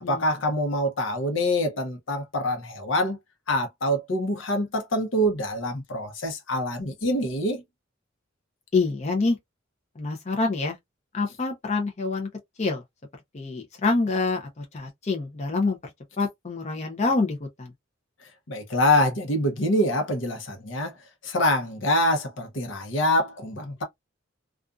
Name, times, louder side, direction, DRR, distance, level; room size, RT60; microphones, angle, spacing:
voice 1, 0.1-3.2 3.5-7.6 18.5-20.9 21.2-23.8, left 1 dB, 70° left, 0.8 m, -25 dB
voice 2, 8.7-9.4 10.0-10.8 11.1-12.3 12.6-12.8 13.3-15.8 16.2-17.7, left 3 dB, 35° left, 0.6 m, -26 dB
2.5 x 2.4 x 2.3 m
head